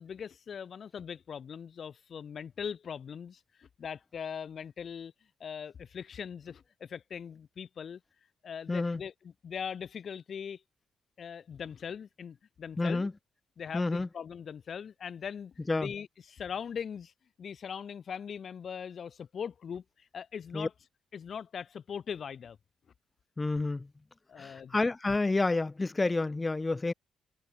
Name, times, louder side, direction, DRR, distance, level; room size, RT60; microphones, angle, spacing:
voice 1, 0.0-5.1 5.4-8.0 8.4-10.6 11.2-13.1 13.6-17.1 17.4-20.7 21.1-22.6 24.3-24.8, left 7 dB, 55° left, 2.1 m, -40 dB
voice 2, 8.7-9.0 12.8-13.1 13.7-14.1 15.7-15.9 20.5-20.7 23.4-23.9 24.4-26.9, left 3 dB, 25° left, 2.1 m, -29 dB
supercardioid pair, 70°, 0 cm